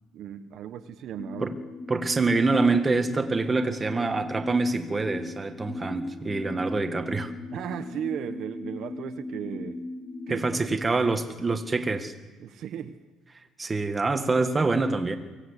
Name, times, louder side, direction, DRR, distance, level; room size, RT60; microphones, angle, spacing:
voice 1, 0.1-1.5 7.5-9.8 10.3-10.5 10.9-11.0 12.4-13.0, right 9 dB, 60° right, 9 dB, 1.2 m, -36 dB
sound 1, 1.2-10.8, left 2 dB, 15° left, 2.4 m, -38 dB
voice 2, 1.9-7.3 10.3-12.1 13.6-15.2, right 3 dB, 20° right, 7 dB, 1.8 m, -25 dB
24.0 x 17.0 x 8.4 m, 1.3 s
cardioid pair, 115°, 0 cm